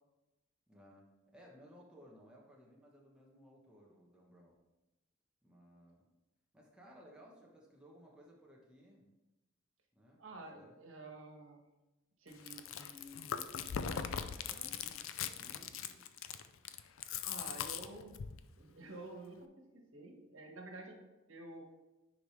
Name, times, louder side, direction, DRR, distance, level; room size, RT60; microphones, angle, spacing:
voice 1, 0.7-4.6 5.4-6.0 6.5-9.1 9.9-10.7 15.4-16.1, equal, 5° right, -3 dB, 1.1 m, -60 dB
voice 2, 10.2-11.7 12.2-14.9 17.2-18.2 18.5-21.0 21.3-21.6, right 2 dB, 80° right, 1 dB, 1.4 m, -51 dB
Chewing mastication, 12.3-18.4, left 8 dB, 80° left, 0.4 m, -40 dB
9.7 x 4.9 x 3.3 m, 1.0 s
head